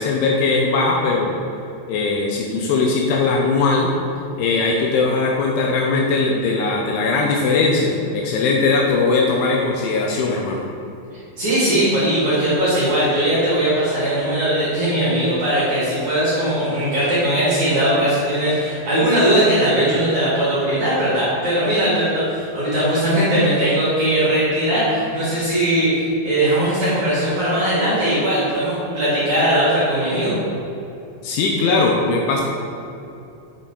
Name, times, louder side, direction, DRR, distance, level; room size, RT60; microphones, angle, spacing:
voice 1, 0.0-1.3 1.9-3.9 4.4-10.6 31.2-32.4, left 3 dB, 80° left, 0 dB, 2.8 m, -19 dB
voice 2, 11.4-30.4, right 1 dB, 50° right, -10 dB, 2.5 m, -19 dB
8.0 x 7.4 x 3.9 m, 2.8 s
omnidirectional pair, 5.9 m